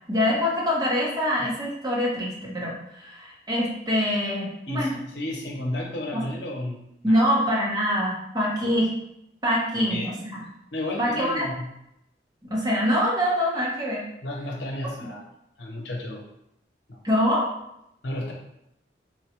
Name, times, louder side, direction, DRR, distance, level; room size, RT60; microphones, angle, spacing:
voice 1, 0.1-5.0 6.1-6.2 7.0-9.0 9.4-10.4 11.0-11.5 12.5-14.0 17.0-17.5, equal, 20° right, -5 dB, 0.8 m, -24 dB
voice 2, 4.7-6.8 7.1-7.2 9.7-10.1 10.7-11.7 14.2-15.2 15.6-16.2 16.9-17.0 18.0-18.3, left 1 dB, 80° left, 0 dB, 0.7 m, -32 dB
3.9 x 2.2 x 2.9 m, 0.80 s
head